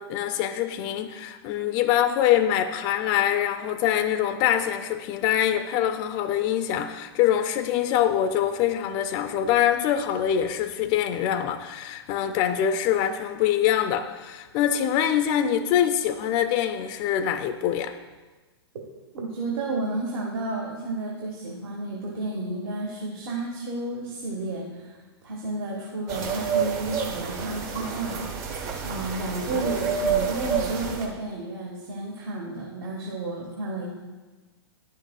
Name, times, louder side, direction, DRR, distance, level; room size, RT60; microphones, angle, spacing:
voice 1, 0.0-17.9, left 10 dB, 30° left, 8 dB, 0.3 m, -24 dB
voice 2, 19.1-28.5 28.8-33.8, right 2 dB, 60° right, -2 dB, 1.3 m, -32 dB
sound 1, 26.1-31.1, right 6 dB, 45° right, 1.1 m, -29 dB
10.5 x 6.3 x 2.2 m, 1.3 s
hypercardioid pair, 125°, 14 cm